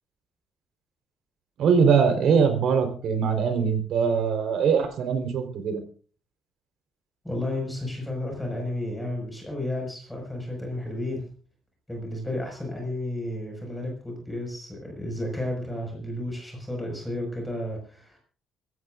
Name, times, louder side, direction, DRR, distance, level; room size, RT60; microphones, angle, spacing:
voice 1, 1.6-5.8, right 6 dB, 60° right, 7 dB, 4.0 m, -22 dB
voice 2, 7.2-11.2 11.9-18.2, left 1 dB, 5° left, 0 dB, 5.7 m, -32 dB
25.5 x 15.5 x 2.5 m, 0.43 s
cardioid pair, 165°, 0 cm